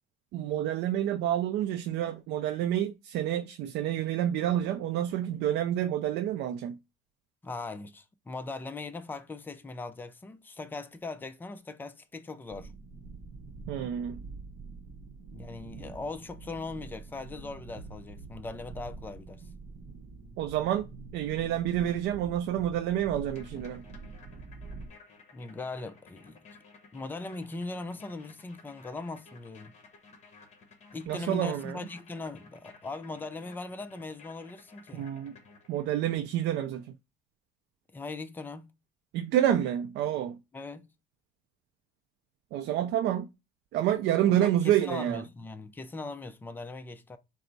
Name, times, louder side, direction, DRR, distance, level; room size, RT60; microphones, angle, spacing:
voice 1, 0.3-6.8 13.7-14.2 20.4-20.9 21.1-23.8 31.1-31.8 34.9-35.4 35.7-37.0 39.1-40.4 42.5-43.3 43.7-45.2, right 11 dB, 65° right, 0.4 m, -28 dB
voice 2, 7.4-12.7 15.3-19.5 25.3-26.4 26.9-29.7 30.9-35.1 37.9-38.7 40.5-40.9 44.4-47.2, left 3 dB, 10° left, 0.4 m, -40 dB
sound 1, 12.5-24.9, right 3 dB, 40° right, 0.8 m, -46 dB
sound 2, 23.3-36.1, left 4 dB, 35° left, 1.1 m, -56 dB
4.4 x 2.0 x 3.9 m
cardioid pair, 130°, 19 cm